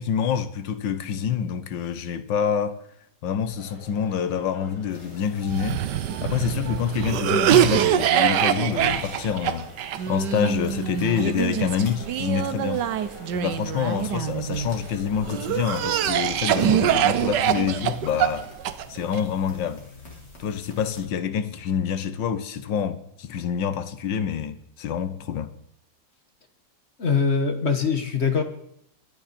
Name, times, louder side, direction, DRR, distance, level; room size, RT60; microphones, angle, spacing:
voice 1, 0.0-2.8 3.2-5.8 6.2-9.7 10.1-12.9 13.3-18.5 18.9-19.8 20.4-25.5, left 8 dB, 85° left, 1.6 m, -27 dB
sound 1, 3.5-17.1, right 1 dB, 15° left, 5.4 m, -46 dB
sound 2, 4.9-21.0, left 3 dB, 65° left, 4.5 m, -45 dB
Cough, 5.5-14.7 15.3-19.2, right 11 dB, 75° right, 1.3 m, -24 dB
voice 2, 27.0-28.4, left 5 dB, 40° left, 1.5 m, -22 dB
22.5 x 10.0 x 4.3 m
omnidirectional pair, 2.0 m